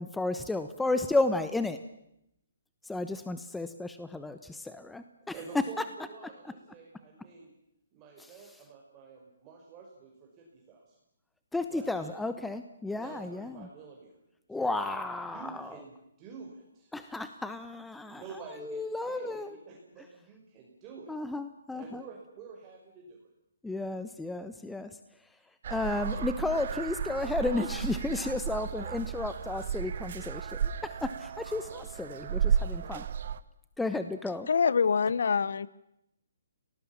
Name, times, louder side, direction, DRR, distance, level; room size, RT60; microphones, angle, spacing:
voice 1, 0.0-1.8 2.8-5.0 8.2-8.3 11.5-13.7 14.5-15.8 16.9-18.2 18.6-19.5 21.1-22.0 23.6-24.9 25.7-33.0 33.8-34.5, left 2 dB, 5° left, 9 dB, 1.0 m, -33 dB
voice 2, 5.3-7.5 7.9-10.9 11.7-12.1 12.9-14.1 14.5-14.9 15.3-15.9 16.2-16.9 18.0-21.1 21.7-23.2, right 5 dB, 25° right, -1 dB, 5.5 m, -48 dB
sound 1, 25.6-33.4, right 7 dB, 55° right, 1.1 m, -33 dB
voice 3, 34.5-35.7, left 6 dB, 70° left, 19 dB, 0.9 m, -25 dB
26.5 x 18.5 x 7.3 m, 0.81 s
hypercardioid pair, 145°, 0 cm